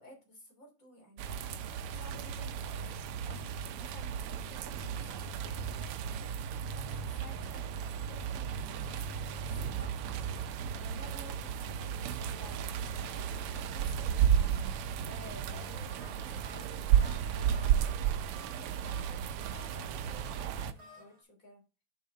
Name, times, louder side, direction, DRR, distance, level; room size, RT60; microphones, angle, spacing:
voice 1, 0.0-1.4 1.9-6.0 6.6-21.6, left 1 dB, 35° left, 1 dB, 3.4 m, -54 dB
sound 1, 1.2-20.7, right 9 dB, 85° right, 1.6 m, -33 dB
sound 2, 15.4-21.2, right 1 dB, 60° right, 2.9 m, -55 dB
6.6 x 5.8 x 4.2 m, 0.30 s
omnidirectional pair, 2.4 m